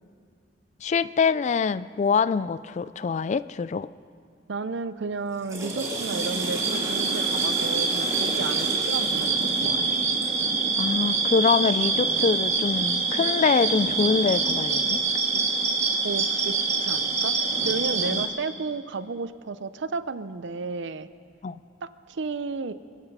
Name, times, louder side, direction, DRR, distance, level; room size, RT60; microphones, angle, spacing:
voice 1, 0.8-3.9 10.8-15.0 18.1-18.3 21.4-21.6, left 5 dB, 40° left, 17 dB, 0.3 m, -24 dB
voice 2, 4.5-9.9 16.0-16.5 16.8-17.4 17.6-21.1 21.8-22.7, right 4 dB, 70° right, 14 dB, 0.6 m, -32 dB
Water / Toilet flush, 5.2-10.5, right 1 dB, 15° right, 2.3 m, -36 dB
sound 1, 5.6-18.3, right 4 dB, 35° right, 1.7 m, -25 dB
26.0 x 9.7 x 5.4 m, 2.2 s
head